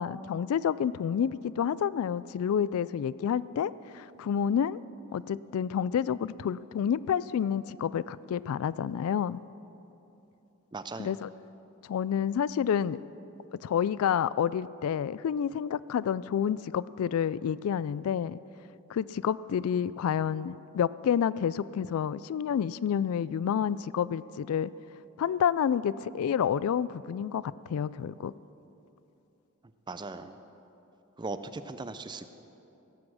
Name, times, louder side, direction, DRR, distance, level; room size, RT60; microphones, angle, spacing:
voice 1, 0.0-4.8 5.1-9.4 11.0-11.3 11.9-13.0 13.6-18.4 18.9-24.7 25.2-28.3, left 8 dB, 75° left, 18 dB, 0.3 m, -29 dB
voice 2, 10.7-11.1 29.9-30.4 31.2-32.3, right 3 dB, 20° right, 11 dB, 0.4 m, -38 dB
16.5 x 8.4 x 6.3 m, 2.9 s
head